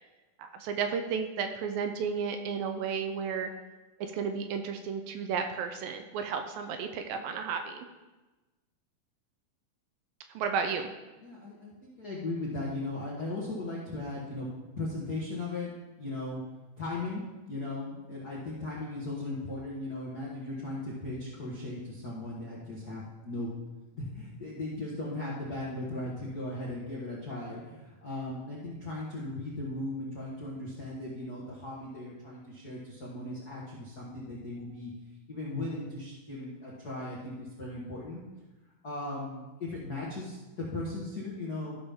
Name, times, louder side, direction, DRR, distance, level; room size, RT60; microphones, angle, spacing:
voice 1, 0.4-3.5 4.0-7.9 10.3-10.9, right 6 dB, 80° right, 6 dB, 2.2 m, -33 dB
voice 2, 11.2-14.5 14.8-15.7 16.0-16.4 16.8-17.2 17.5-23.5 23.9-34.9 35.3-38.2 38.8-41.7, left 2 dB, 60° left, -7 dB, 1.0 m, -37 dB
14.0 x 5.9 x 3.6 m, 1.1 s
omnidirectional pair, 4.3 m